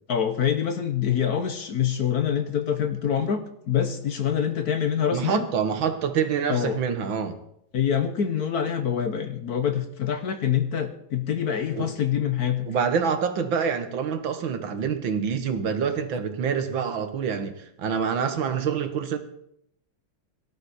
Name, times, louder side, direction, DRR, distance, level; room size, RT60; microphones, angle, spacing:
voice 1, 0.1-5.5 6.5-6.8 7.7-12.7, left 8 dB, 55° left, 1.3 m, -25 dB
voice 2, 5.1-7.4 11.8-11.9 12.7-19.2, right 6 dB, 70° right, 2.0 m, -26 dB
18.0 x 11.5 x 4.3 m
omnidirectional pair, 2.2 m